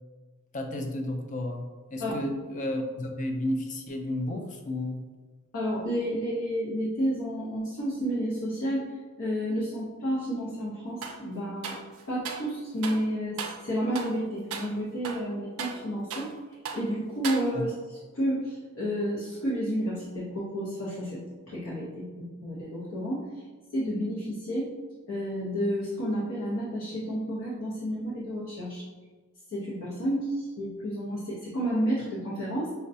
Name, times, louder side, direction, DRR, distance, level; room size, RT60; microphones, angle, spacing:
voice 1, 0.5-5.0 17.5-17.6, left 1 dB, 35° left, 4 dB, 0.4 m, -32 dB
voice 2, 5.5-11.8 12.1-16.3 16.7-23.3 23.7-24.7 25.1-28.9 29.5-32.7, equal, 65° left, -6 dB, 0.7 m, -31 dB
sound 1, 11.0-11.2 11.6-12.5 12.8-13.1 13.4-13.7 14.0-14.2 14.5-14.7 15.0-16.4 16.7-16.9 17.2-17.8, right 5 dB, 65° right, 0.4 m, -37 dB
5.1 x 2.2 x 2.6 m, 1.4 s
head